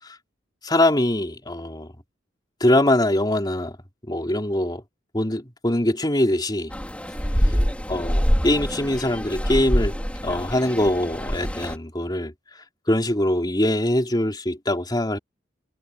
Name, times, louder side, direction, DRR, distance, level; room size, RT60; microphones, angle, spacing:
voice 1, 0.6-1.9 2.6-3.7 4.1-4.8 5.1-6.7 7.9-9.9 10.2-12.3 12.9-15.2, left 1 dB, 20° left, 3.7 m, -22 dB
sound 1, 6.7-11.8, equal, 5° left, 5.2 m, -25 dB
head